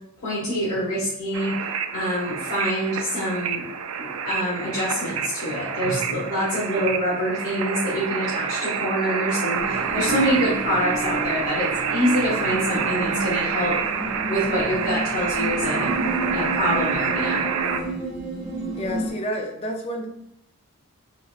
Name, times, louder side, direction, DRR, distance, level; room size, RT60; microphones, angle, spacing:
voice 1, 0.2-1.6 1.9-3.6 4.0-13.8 14.0-15.9 16.3-17.5, equal, 90° left, -9 dB, 1.3 m, -26 dB
sound 1, 1.3-17.8, right 6 dB, 70° right, 0.4 m, -28 dB
sound 2, 9.5-19.1, right 1 dB, 55° right, 1.0 m, -31 dB
voice 2, 18.8-20.1, equal, 30° left, 3 dB, 0.5 m, -30 dB
3.9 x 3.1 x 2.5 m, 0.81 s
head